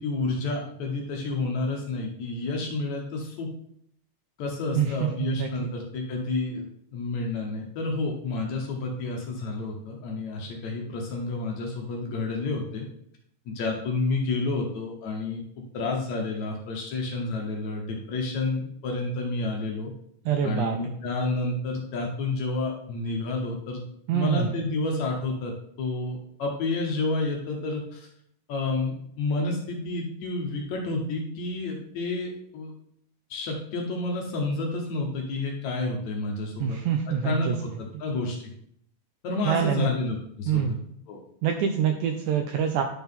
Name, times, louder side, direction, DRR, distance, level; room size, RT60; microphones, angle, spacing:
voice 1, 0.0-3.5 4.4-6.7 6.9-12.9 13.5-15.4 15.7-19.9 20.4-23.8 24.1-28.1 28.5-32.7 33.3-36.8 37.1-38.5 39.2-40.8 41.1-41.2, left 3 dB, 65° left, 0 dB, 2.0 m, -30 dB
voice 2, 5.2-5.7 20.3-20.8 24.1-24.5 36.6-37.5 39.4-39.9 40.5-40.8 41.4-42.8, right 8 dB, 80° right, 5 dB, 1.7 m, -25 dB
10.5 x 4.2 x 3.6 m, 0.70 s
omnidirectional pair, 3.9 m